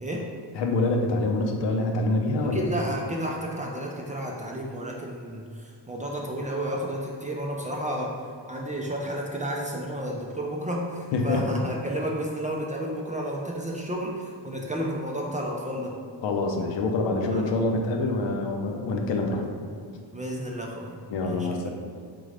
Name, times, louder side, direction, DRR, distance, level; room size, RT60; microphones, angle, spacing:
voice 1, 0.0-0.3 2.5-8.2 8.5-16.0 17.3-17.5 20.1-21.7, equal, 20° right, -2 dB, 0.4 m, -32 dB
voice 2, 0.5-2.6 11.1-11.6 16.2-19.5 21.1-21.7, left 2 dB, 70° left, 2 dB, 0.7 m, -26 dB
3.8 x 3.8 x 3.2 m, 2.2 s
cardioid pair, 115°, 46 cm